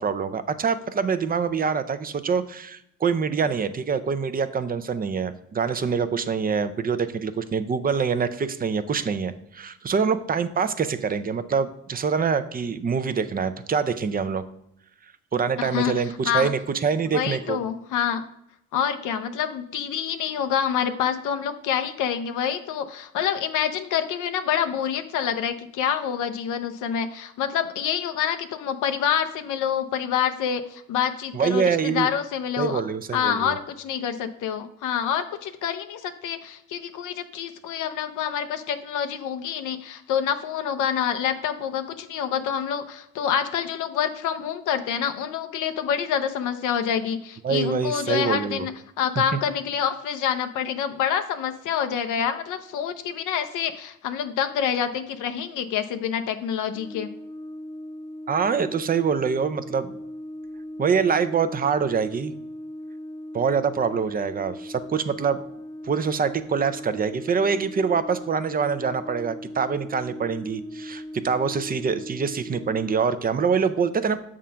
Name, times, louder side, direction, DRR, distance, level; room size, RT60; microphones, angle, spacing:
voice 1, 0.0-14.4 15.3-17.6 31.3-32.1 32.6-33.6 47.4-48.7 58.3-59.9 60.8-62.3 63.3-65.4 65.8-74.2, right 6 dB, 30° right, 13 dB, 0.5 m, -25 dB
voice 2, 15.6-15.9 16.2-16.5 17.1-18.2 18.7-32.8 33.1-48.7 49.0-57.1, left 8 dB, 80° left, 8 dB, 0.6 m, -27 dB
Brass instrument, 56.7-73.1, left 1 dB, 10° left, 0.9 m, -39 dB
7.4 x 3.7 x 5.6 m, 0.76 s
cardioid pair, 90°, 30 cm